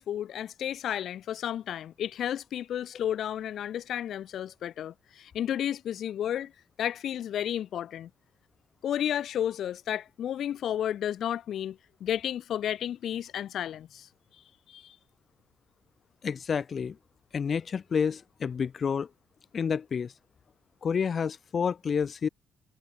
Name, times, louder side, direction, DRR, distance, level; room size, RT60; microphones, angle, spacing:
voice 1, 0.0-6.5 6.8-8.1 8.8-14.1 14.7-15.0, left 10 dB, 70° left, 5.6 m, -32 dB
voice 2, 16.2-17.0 17.3-19.1 19.5-20.1 20.8-22.3, left 6 dB, 45° left, 1.0 m, -29 dB
cardioid pair, 90°, 0 cm